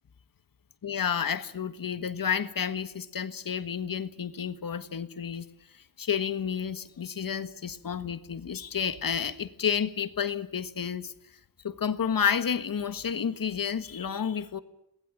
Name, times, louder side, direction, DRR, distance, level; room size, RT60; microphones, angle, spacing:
voice 1, 0.8-5.4 5.7-11.1 11.6-14.6, left 7 dB, 55° left, 12 dB, 1.6 m, -30 dB
28.0 x 20.5 x 7.4 m, 0.82 s
wide cardioid pair, 140°, 39 cm